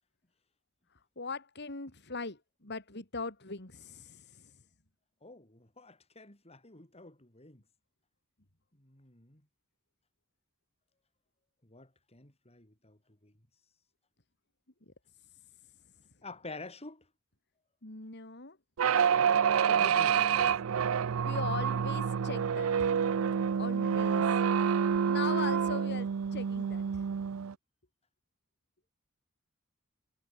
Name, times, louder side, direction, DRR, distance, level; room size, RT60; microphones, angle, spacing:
voice 1, 0.9-4.6 14.9-15.0 17.8-18.6 21.2-22.9 23.6-24.5 25.1-27.0, left 4 dB, 55° left, 3.5 m, -40 dB
voice 2, 5.2-7.6 8.8-9.4 11.6-13.3 16.2-17.0 19.7-20.8, left 2 dB, 30° left, 5.1 m, -49 dB
sound 1, 18.8-27.5, right 7 dB, 75° right, 0.4 m, -28 dB
head